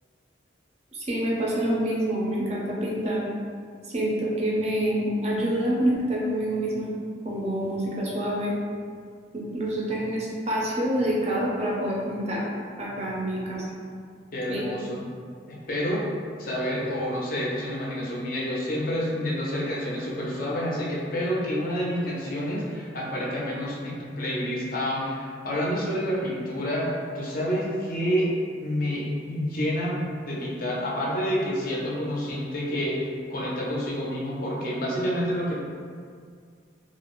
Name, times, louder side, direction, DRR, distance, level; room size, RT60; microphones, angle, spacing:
voice 1, 0.9-3.2 3.8-6.9 7.2-8.5 9.3-12.4 12.8-13.7 14.5-14.7, right 1 dB, 35° right, -4 dB, 0.4 m, -27 dB
voice 2, 14.3-15.0 15.5-16.1 16.4-28.3 28.6-35.6, equal, 45° left, -5 dB, 0.5 m, -28 dB
2.4 x 2.0 x 2.9 m, 2.1 s
head